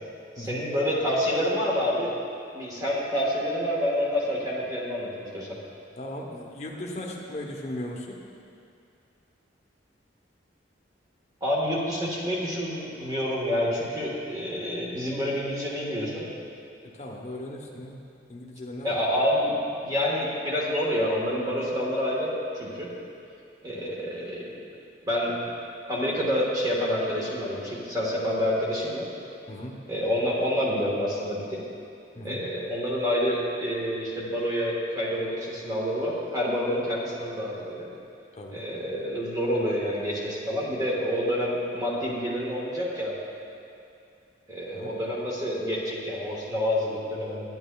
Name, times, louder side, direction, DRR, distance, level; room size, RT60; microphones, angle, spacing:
voice 1, 0.4-2.1 2.5-5.5 11.4-16.3 18.8-19.6 19.8-22.9 23.6-24.4 25.1-25.5 25.9-29.1 29.9-31.6 32.2-37.9 38.5-43.2 44.5-47.4, equal, 20° right, -5 dB, 1.3 m, -28 dB
voice 2, 6.0-8.2 16.9-18.0 18.3-19.0 29.5-29.7 32.1-32.4 38.4-38.6 44.7-44.9, left 1 dB, 35° left, -1 dB, 0.8 m, -37 dB
10.0 x 9.1 x 2.3 m, 2.6 s
head